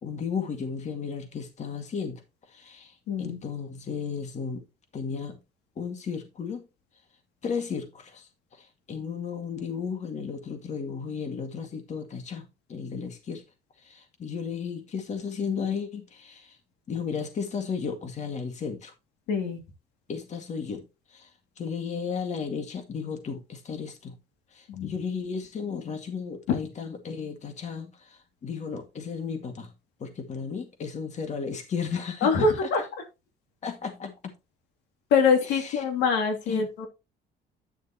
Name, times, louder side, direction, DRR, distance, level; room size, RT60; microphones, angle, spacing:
voice 1, 0.0-2.2 2.5-4.6 4.9-5.4 5.8-6.7 7.4-8.3 8.6-13.4 13.8-16.6 16.9-18.9 20.1-21.3 21.6-24.2 24.5-29.7 30.0-32.3 32.6-32.7 33.6-34.3 35.6-35.8 36.5-36.7, left 6 dB, 45° left, 2.1 m, -34 dB
voice 2, 3.1-3.4 19.3-19.6 24.7-24.9 32.2-32.8 35.1-36.9, left 5 dB, 90° left, 2.5 m, -24 dB
10.5 x 6.6 x 3.0 m
cardioid pair, 110°, 17 cm